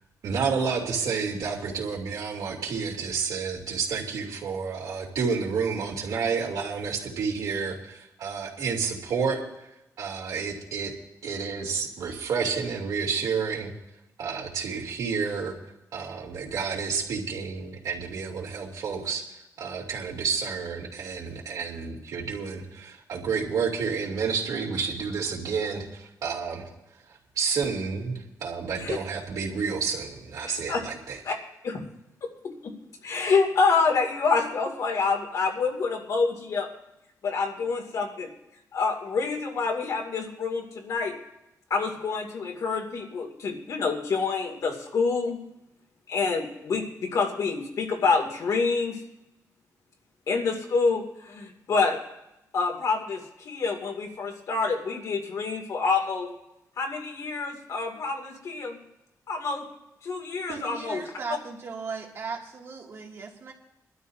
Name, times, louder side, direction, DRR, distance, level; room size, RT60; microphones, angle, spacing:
voice 1, 0.2-9.4 10.0-10.9 11.2-13.7 14.2-15.5 15.9-19.2 19.6-26.6 27.4-31.2, right 5 dB, 75° right, -1 dB, 3.1 m, -30 dB
voice 2, 30.4-30.8 31.2-31.4 31.6-31.8 32.2-32.7 33.0-36.7 37.2-38.3 38.7-41.1 41.7-45.4 46.1-49.0 50.3-52.0 52.5-56.3 56.8-58.8 59.3-59.7 60.0-61.0, left 4 dB, 60° left, 2 dB, 2.6 m, -27 dB
voice 3, 60.5-63.5, right 5 dB, 45° right, -1 dB, 2.5 m, -37 dB
23.5 x 12.5 x 2.8 m, 0.89 s
wide cardioid pair, 165°, 6 cm